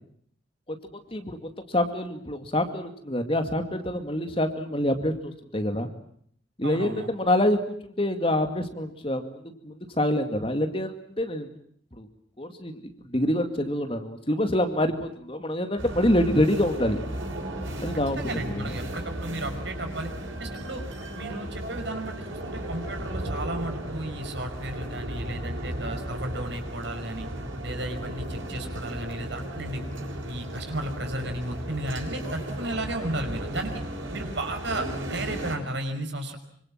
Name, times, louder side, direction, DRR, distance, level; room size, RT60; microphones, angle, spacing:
voice 1, 0.7-5.9 6.6-11.5 12.0-12.1 12.4-17.0 17.8-18.2 18.5-18.7, left 1 dB, 30° left, 7 dB, 2.3 m, -26 dB
voice 2, 6.6-7.1 18.2-20.1 20.4-20.8 21.1-27.3 27.6-29.8 30.3-33.8 34.1-36.4, right 1 dB, 65° right, 6 dB, 5.6 m, -34 dB
sound 1, 15.8-35.6, right 1 dB, 85° right, 6.9 m, -35 dB
26.0 x 25.0 x 7.5 m, 0.64 s
head